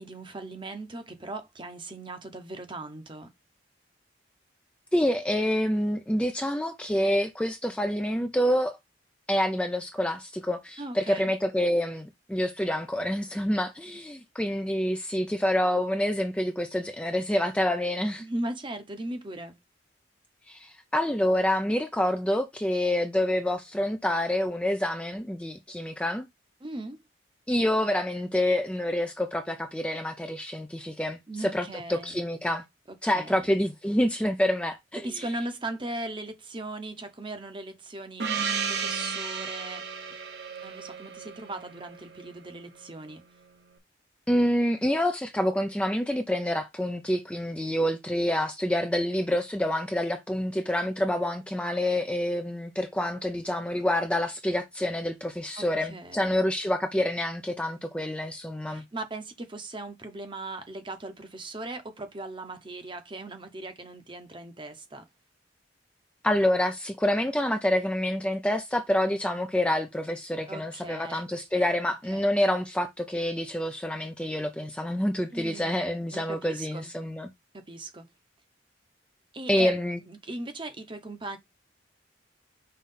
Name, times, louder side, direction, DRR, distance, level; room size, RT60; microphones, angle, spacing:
voice 1, 0.0-3.3 10.8-11.3 18.2-19.6 26.6-27.0 31.3-32.2 32.9-33.5 35.0-39.8 40.6-43.2 55.6-56.4 58.7-65.1 70.5-71.3 72.1-72.3 75.3-75.8 76.1-76.9 77.5-78.1 79.3-79.8 80.1-81.4, right 2 dB, 25° right, 0.9 m, -38 dB
voice 2, 4.9-8.8 9.3-18.2 20.5-26.3 27.5-32.6 33.0-35.0 44.3-58.8 66.2-77.3 79.5-80.0, left 1 dB, 5° left, 0.5 m, -27 dB
Gong, 38.2-42.5, right 6 dB, 60° right, 1.1 m, -33 dB
5.6 x 3.2 x 5.5 m
head